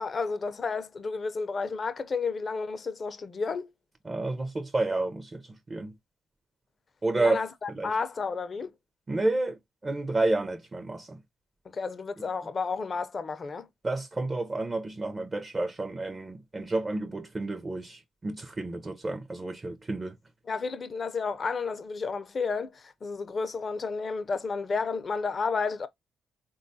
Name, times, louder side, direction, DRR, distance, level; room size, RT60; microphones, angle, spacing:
voice 1, 0.0-3.7 7.2-8.7 11.7-13.7 20.5-25.9, left 4 dB, 40° left, 0.4 m, -31 dB
voice 2, 4.0-5.9 7.0-7.4 7.7-7.9 9.1-11.2 13.8-20.1, right 2 dB, 25° right, 0.5 m, -30 dB
3.5 x 2.2 x 2.5 m
cardioid pair, 90°, 0 cm